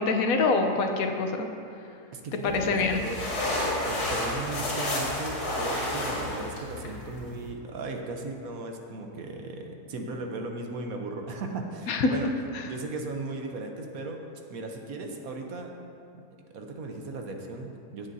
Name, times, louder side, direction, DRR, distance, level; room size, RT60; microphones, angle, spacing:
voice 1, 0.0-1.5 2.4-3.0 11.9-12.1, left 4 dB, 70° left, 5 dB, 1.1 m, -25 dB
voice 2, 2.1-3.2 3.8-12.3 12.6-14.2 14.5-15.7 16.1-16.3 16.5-18.1, right 3 dB, 65° right, 3 dB, 1.3 m, -37 dB
sound 1, 2.5-7.5, left 1 dB, 90° left, 2.7 m, -31 dB
16.5 x 7.4 x 2.7 m, 2.5 s
omnidirectional pair, 1.6 m